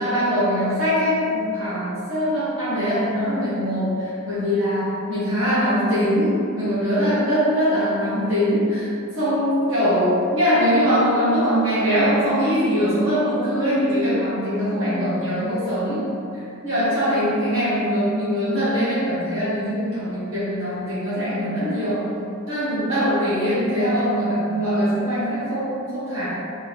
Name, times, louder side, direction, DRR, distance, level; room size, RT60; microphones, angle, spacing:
voice 1, 0.0-8.9 9.1-16.0 16.3-22.0 22.5-26.3, equal, 70° right, -13 dB, 0.8 m, -22 dB
2.6 x 2.5 x 3.2 m, 2.6 s
head